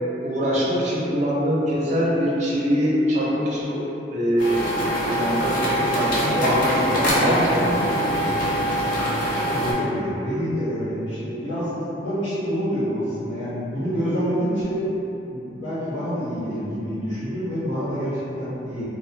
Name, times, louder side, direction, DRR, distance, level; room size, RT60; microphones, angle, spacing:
voice 1, 0.2-3.9 4.1-4.6 5.1-7.8 8.1-8.4, equal, 40° right, -6 dB, 0.5 m, -23 dB
sound 1, 4.4-9.7, equal, 50° left, 0.5 m, -23 dB
voice 2, 9.5-14.8 15.3-18.8, equal, 80° left, -15 dB, 1.2 m, -27 dB
2.8 x 2.0 x 2.7 m, 2.9 s
head